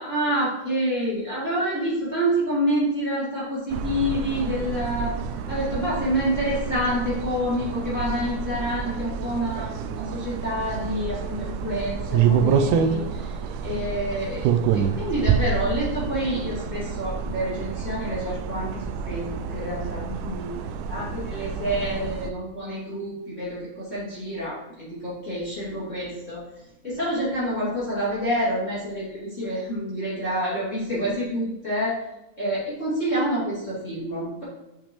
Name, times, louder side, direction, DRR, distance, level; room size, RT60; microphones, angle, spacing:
voice 1, 0.0-13.4 13.6-20.5 20.9-26.4 26.8-32.0 32.4-34.4, equal, 25° left, -9 dB, 2.5 m, -28 dB
sound 1, 3.7-22.3, right 7 dB, 85° right, 2.0 m, -28 dB
7.5 x 7.1 x 3.0 m, 0.95 s
omnidirectional pair, 3.4 m